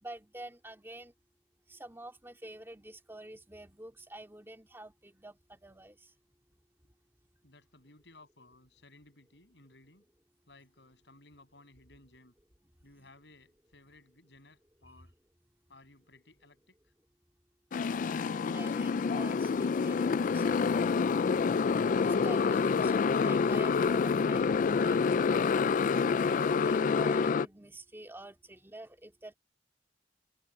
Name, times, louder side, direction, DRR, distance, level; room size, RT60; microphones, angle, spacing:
voice 1, 0.0-1.1 1.7-6.1 12.9-13.1 18.5-21.2 22.0-25.3 26.6-29.3, right 1 dB, 15° right, 2.5 m, -48 dB
voice 2, 7.4-10.0 10.5-12.3 12.8-15.1 15.7-16.9, left 2 dB, 75° left, 8.0 m, -59 dB
Motorcycle, 17.7-27.5, left 5 dB, 45° left, 0.3 m, -27 dB
head